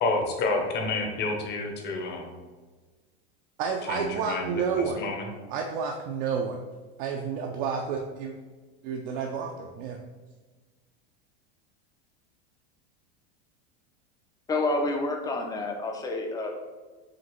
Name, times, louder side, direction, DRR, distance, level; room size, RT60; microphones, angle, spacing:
voice 1, 0.0-2.4 3.9-5.3, left 3 dB, 30° left, 2 dB, 0.8 m, -29 dB
voice 2, 3.6-5.0 5.5-6.7 7.0-8.4 8.8-10.0, right 6 dB, 60° right, 1 dB, 0.5 m, -30 dB
voice 3, 14.5-16.5, left 2 dB, 10° left, 3 dB, 0.4 m, -28 dB
5.0 x 2.8 x 3.0 m, 1.3 s
supercardioid pair, 135°, 32 cm